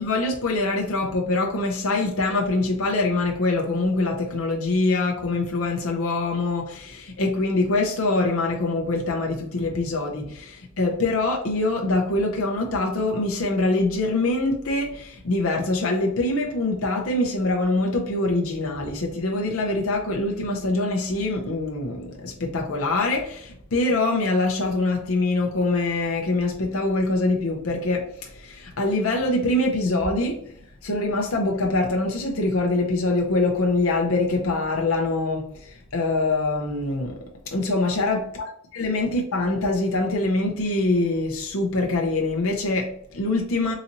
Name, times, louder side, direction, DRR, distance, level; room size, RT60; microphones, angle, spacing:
voice 1, 0.0-30.6 30.8-38.3 38.8-43.7, left 2 dB, 75° left, 0.7 m, -24 dB
3.9 x 2.7 x 2.9 m
head